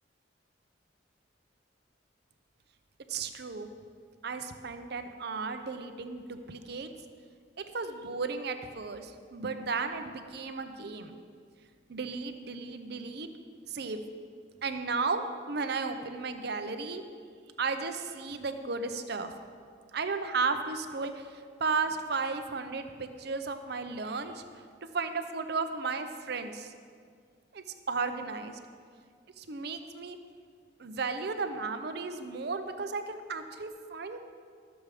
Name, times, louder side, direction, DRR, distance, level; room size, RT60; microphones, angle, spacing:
voice 1, 3.1-3.7 4.2-6.9 7.6-11.2 11.9-13.3 13.7-14.0 14.6-17.0 17.6-19.3 19.9-24.4 24.9-26.7 27.5-28.6 29.4-30.2 30.8-34.2, right 4 dB, 60° right, 8 dB, 0.7 m, -34 dB
12.5 x 7.2 x 4.8 m, 2.1 s
head